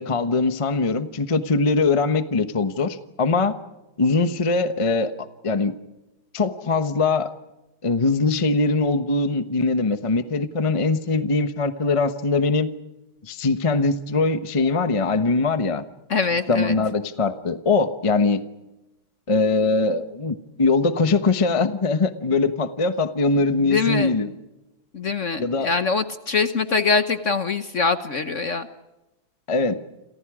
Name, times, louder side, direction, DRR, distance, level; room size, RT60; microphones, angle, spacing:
voice 1, 0.0-3.5 4.0-5.1 5.4-5.7 6.3-7.3 7.8-12.7 13.2-15.8 16.5-18.4 19.3-24.3 25.4-25.7 29.5-29.8, left 3 dB, 25° left, 10 dB, 0.7 m, -22 dB
voice 2, 16.1-16.8 23.6-24.1 24.9-28.7, left 4 dB, 45° left, 10 dB, 1.1 m, -23 dB
29.5 x 27.5 x 4.9 m, 1.0 s
omnidirectional pair, 2.3 m